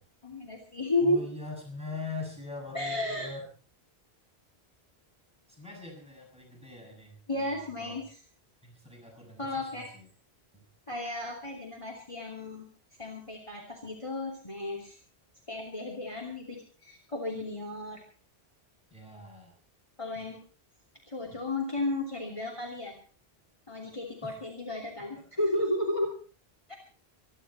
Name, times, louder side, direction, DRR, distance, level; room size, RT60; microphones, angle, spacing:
voice 1, 0.2-1.2 2.7-3.3 7.3-8.2 9.4-9.9 10.9-12.7 13.0-15.0 15.5-18.0 20.0-20.4 21.1-22.9 23.7-26.1 26.7-26.8, left 1 dB, 30° left, 0 dB, 3.0 m, -33 dB
voice 2, 1.0-3.4 5.5-8.0 8.6-10.1 10.5-10.6 18.9-19.6 20.1-20.3 24.2-24.4 25.1-25.2 25.5-25.6, left 3 dB, 5° right, -1 dB, 6.8 m, -42 dB
26.0 x 11.5 x 4.3 m, 0.39 s
omnidirectional pair, 1.1 m